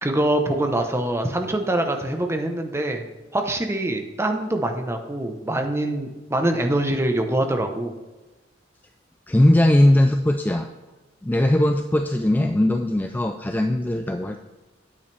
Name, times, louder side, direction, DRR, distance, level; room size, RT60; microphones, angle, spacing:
voice 1, 0.0-3.0 3.3-7.9, right 1 dB, 15° right, 4 dB, 0.9 m, -24 dB
voice 2, 9.3-10.7 11.2-14.4, left 1 dB, 10° left, 5 dB, 0.4 m, -19 dB
9.6 x 8.6 x 3.4 m, 1.2 s
head